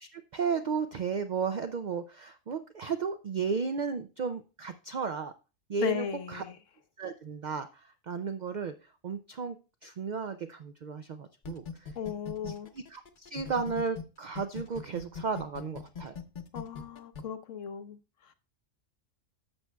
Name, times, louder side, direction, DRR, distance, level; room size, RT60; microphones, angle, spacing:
voice 1, 0.0-5.3 5.7-6.4 7.0-8.7 9.0-9.6 9.8-11.9 12.4-16.2, right 5 dB, 75° right, 0.4 m, -34 dB
voice 2, 5.8-6.6 11.9-12.7 16.5-18.3, left 8 dB, 75° left, 1.1 m, -36 dB
sound 1, 11.4-14.0 14.4-17.2, left 6 dB, 45° left, 0.8 m, -40 dB
11.5 x 7.2 x 2.2 m
omnidirectional pair, 1.3 m